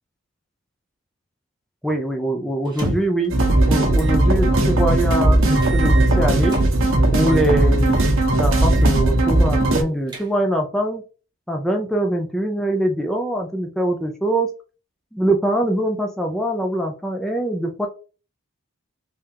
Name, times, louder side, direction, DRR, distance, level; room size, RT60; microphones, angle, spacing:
voice 1, 1.8-3.3 3.7-6.6 7.1-11.0 11.5-14.5 15.1-17.9, right 1 dB, ahead, 2 dB, 0.4 m, -23 dB
sound 1, 2.7-3.3 4.0-4.2 4.6-4.7 5.5-6.7 7.2-7.5 7.9-8.2 8.6-8.9 9.2-9.3 9.8-10.6, right 2 dB, 20° right, 1.1 m, -32 dB
sound 2, 3.3-9.8, right 1 dB, 60° right, 0.9 m, -17 dB
3.6 x 3.2 x 2.8 m, 0.35 s
head